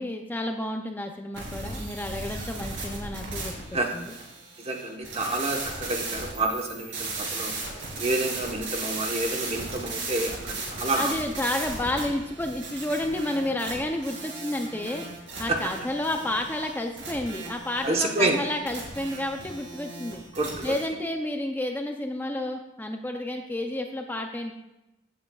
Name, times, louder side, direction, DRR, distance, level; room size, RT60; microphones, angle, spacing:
voice 1, 0.0-3.5 3.9-4.1 11.0-15.0 15.4-20.2 20.6-24.5, left 1 dB, 10° left, 3 dB, 0.5 m, -30 dB
sound 1, 1.3-20.8, right 3 dB, 80° right, 3.0 m, -36 dB
voice 2, 4.6-7.5 8.0-11.2 15.5-15.6 17.8-18.4 20.3-20.8, right 2 dB, 35° right, 2 dB, 1.1 m, -28 dB
15.5 x 7.7 x 2.3 m, 0.96 s
head